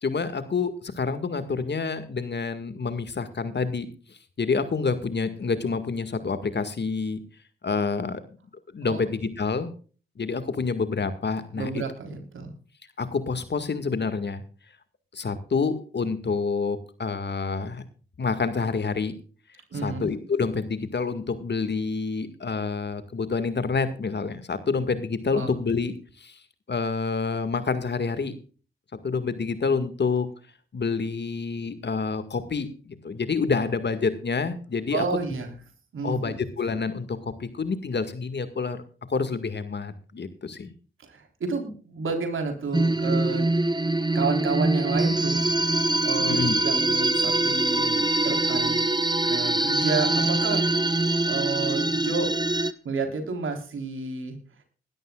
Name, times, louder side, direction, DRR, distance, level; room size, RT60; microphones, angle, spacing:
voice 1, 0.0-3.9 4.4-7.2 7.6-8.2 8.7-9.7 10.2-11.8 13.0-14.4 15.1-17.8 18.2-19.1 19.8-26.4 26.7-28.3 29.0-30.3 30.7-35.0 36.0-38.8 39.1-40.7 46.3-46.5, left 4 dB, 60° left, 11 dB, 1.9 m, -28 dB
voice 2, 11.6-12.5 19.7-20.1 25.3-25.5 34.9-35.5 35.9-36.3 41.0-43.5 44.1-45.5 46.0-48.8 49.2-50.7 51.3-54.4, right 4 dB, 80° right, 5 dB, 4.0 m, -30 dB
sound 1, 42.7-52.7, right 2 dB, 20° right, 1.2 m, -23 dB
20.0 x 13.0 x 2.4 m, 0.38 s
supercardioid pair, 40°, 20 cm